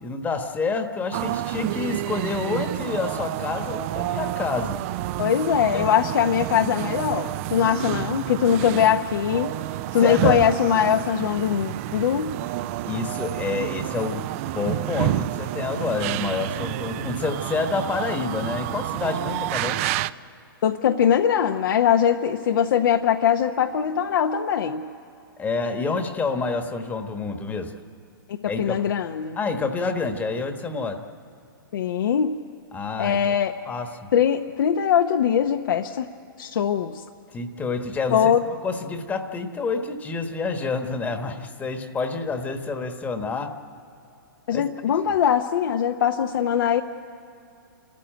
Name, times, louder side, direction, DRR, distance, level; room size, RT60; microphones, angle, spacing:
voice 1, 0.0-4.8 5.7-5.9 10.0-10.4 12.9-19.8 25.4-27.7 28.4-28.8 29.4-31.0 32.7-33.3 33.7-34.1 37.3-38.3 38.6-43.5 44.5-44.6, left 4 dB, 15° left, 7 dB, 1.2 m, -28 dB
sound 1, 1.1-20.1, right 15 dB, 35° right, 0.4 m, -29 dB
voice 2, 5.2-9.6 9.9-12.3 20.6-24.8 28.6-29.4 31.7-32.4 33.0-33.5 34.1-36.1 36.4-37.0 38.1-38.4 44.5-46.8, left 8 dB, 65° left, 5 dB, 0.8 m, -21 dB
28.5 x 14.0 x 9.1 m, 2.8 s
hypercardioid pair, 140°, 12 cm